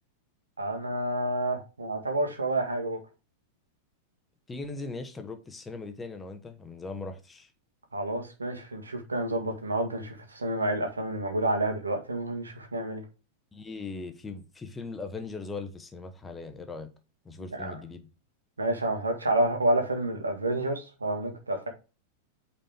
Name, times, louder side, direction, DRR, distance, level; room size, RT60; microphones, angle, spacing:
voice 1, 0.6-3.0 7.9-13.0 17.5-17.8 18.6-21.7, right 1 dB, 75° right, 1.7 m, -29 dB
voice 2, 4.5-7.5 13.5-16.9 17.2-18.0, left 3 dB, 15° left, 1.1 m, -39 dB
8.8 x 4.2 x 3.6 m
figure-of-eight pair, 90°, 0 cm